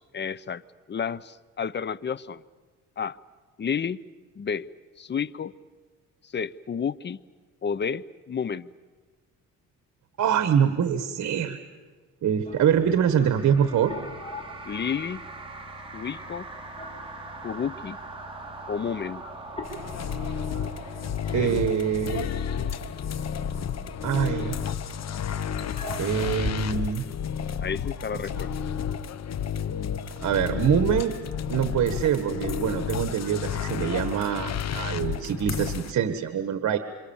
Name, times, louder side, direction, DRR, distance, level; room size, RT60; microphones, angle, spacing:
voice 1, 0.1-0.6 0.9-2.4 3.0-3.2 3.6-4.0 4.4-4.7 5.0-5.5 6.2-7.2 7.6-8.7 14.7-15.2 15.9-16.5 17.4-18.0 18.7-19.2 21.3-21.5 27.6-28.5, left 7 dB, 35° left, 19 dB, 0.8 m, -31 dB
voice 2, 10.2-11.6 12.2-13.9 21.3-22.3 24.0-24.6 26.0-27.1 30.2-31.1 31.5-36.8, right 8 dB, 65° right, 9 dB, 1.5 m, -24 dB
sound 1, 12.4-26.5, left 1 dB, 20° left, 4.1 m, -43 dB
sound 2, 12.8-22.5, right 3 dB, 15° right, 4.6 m, -43 dB
sound 3, 19.6-35.9, left 8 dB, 60° left, 1.3 m, -31 dB
27.5 x 26.5 x 7.3 m, 1.4 s
cardioid pair, 90°, 30 cm